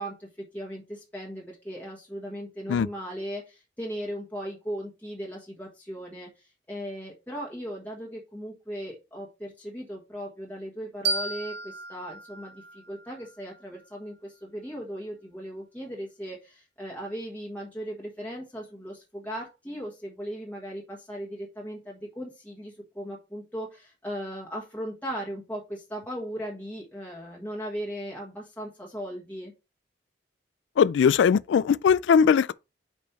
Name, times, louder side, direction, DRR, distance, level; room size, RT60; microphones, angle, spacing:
voice 1, 0.0-29.5, equal, 10° left, 1.5 m, -37 dB
sound 1, 11.0-13.8, right 3 dB, 65° right, 1.5 m, -34 dB
voice 2, 30.8-32.5, left 7 dB, 75° left, 0.3 m, -20 dB
5.3 x 5.2 x 4.2 m
head